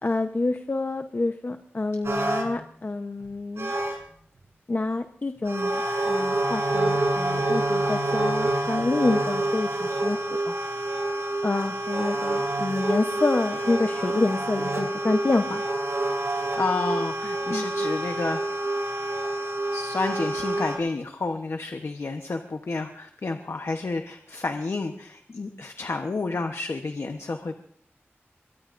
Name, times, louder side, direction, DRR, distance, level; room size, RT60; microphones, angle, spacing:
voice 1, 0.0-3.7 4.7-10.2 10.5-10.6 11.4-15.6 17.5-17.7, left 2 dB, 50° left, 6 dB, 0.9 m, -27 dB
sound 1, 2.0-2.5 3.2-3.3 3.6-4.0 5.4-20.8, right 2 dB, 80° right, 5.4 m, -27 dB
voice 2, 16.6-18.4 19.7-27.5, left 3 dB, 75° left, 5 dB, 1.0 m, -30 dB
23.5 x 22.5 x 2.6 m, 0.63 s
wide cardioid pair, 55°, 5 cm